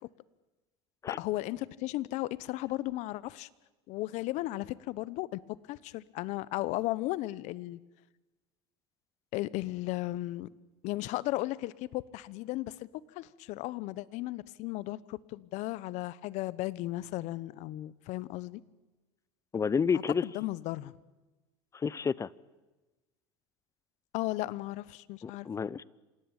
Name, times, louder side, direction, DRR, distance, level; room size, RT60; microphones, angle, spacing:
voice 1, 1.1-3.5 3.9-5.4 5.7-7.8 9.3-10.5 10.8-18.6 20.2-20.9 24.1-25.5, left 18 dB, 60° left, 20 dB, 1.0 m, -35 dB
voice 2, 19.5-20.2 21.7-22.3 25.2-25.8, left 6 dB, 20° left, 22 dB, 0.7 m, -30 dB
27.0 x 17.5 x 9.0 m, 1.1 s
supercardioid pair, 105°, 14 cm